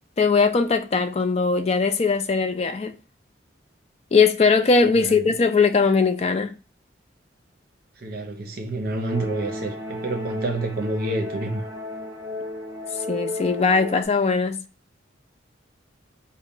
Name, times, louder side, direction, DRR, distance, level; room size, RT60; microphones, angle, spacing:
voice 1, 0.2-2.9 4.1-6.5 13.1-14.6, left 4 dB, 35° left, 0.4 m, -20 dB
voice 2, 5.0-5.3 8.0-11.7, right 2 dB, 50° right, 0.8 m, -28 dB
sound 1, 9.0-14.0, left 1 dB, 15° right, 1.0 m, -33 dB
4.3 x 2.1 x 3.6 m
head